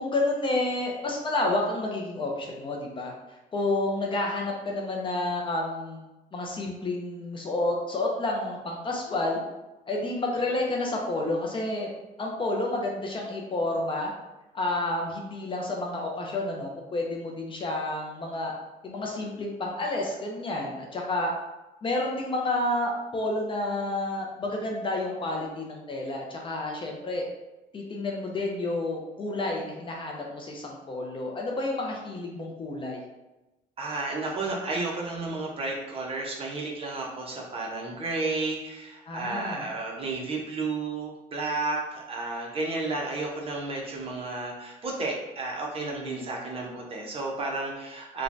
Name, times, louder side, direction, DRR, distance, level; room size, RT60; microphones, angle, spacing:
voice 1, 0.0-3.1 3.5-6.0 6.3-9.4 9.9-11.9 12.2-14.1 14.5-18.5 18.8-21.3 21.8-27.3 27.7-33.0 39.1-39.6 45.8-46.3, left 2 dB, 30° left, 0 dB, 0.5 m, -30 dB
voice 2, 33.8-48.2, right 3 dB, 35° right, -2 dB, 0.7 m, -32 dB
3.1 x 2.2 x 2.5 m, 1.0 s
cardioid pair, 110°, 17 cm